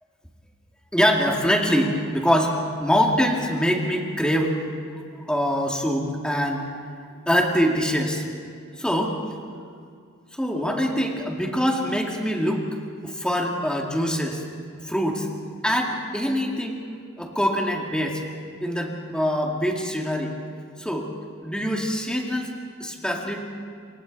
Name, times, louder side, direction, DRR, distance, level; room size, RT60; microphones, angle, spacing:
voice 1, 0.9-4.5 5.1-6.7 7.3-8.2 8.8-9.2 10.3-12.7 13.0-14.4 14.8-15.3 15.6-16.8 17.2-18.2 18.6-20.4 20.8-21.1 21.4-22.5 22.8-23.4, equal, 5° left, 0 dB, 2.1 m, -24 dB
28.0 x 24.0 x 4.1 m, 2.2 s
head